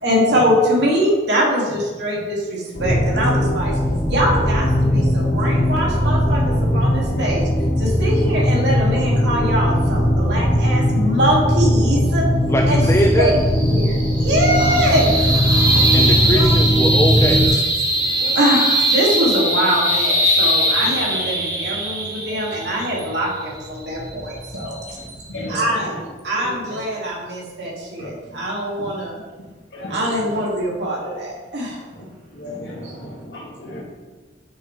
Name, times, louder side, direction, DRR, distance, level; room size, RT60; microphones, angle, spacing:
voice 1, 0.0-3.8 4.1-7.5 7.8-12.2 12.7-12.8 13.2-13.3 13.6-15.2 16.3-16.5 18.3-24.7 25.5-25.9 26.2-29.2 29.9-31.8 32.8-32.9, equal, 70° right, -4 dB, 2.6 m, -22 dB
sound 1, 2.7-17.5, equal, 55° left, 2.9 m, -19 dB
voice 2, 12.5-13.3 15.9-17.4 17.9-18.3, equal, 15° left, 1 dB, 0.5 m, -22 dB
sound 2, 12.8-25.5, right 1 dB, 20° right, 1.4 m, -21 dB
voice 3, 15.7-16.3 18.2-18.4 21.6-21.7 24.5-26.0 26.4-26.5 28.0-28.4 28.8-28.9 29.7-30.4 31.9-32.1 32.3-33.8, left 1 dB, 70° left, -3 dB, 2.3 m, -35 dB
9.1 x 6.6 x 3.5 m, 1.2 s
head